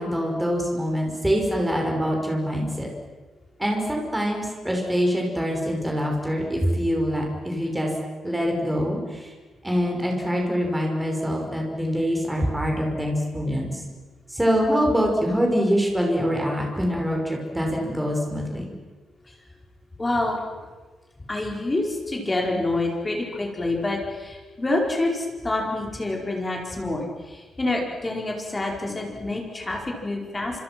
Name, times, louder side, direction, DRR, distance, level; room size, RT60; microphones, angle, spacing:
voice 1, 0.0-2.9 3.6-7.9 8.2-9.3 9.6-13.8 14.3-18.7, equal, 5° right, 0 dB, 5.7 m, -24 dB
voice 2, 20.0-20.4 21.3-30.6, left 2 dB, 15° left, 0 dB, 4.8 m, -27 dB
29.5 x 27.5 x 6.1 m, 1.3 s
wide cardioid pair, 180°, 0 cm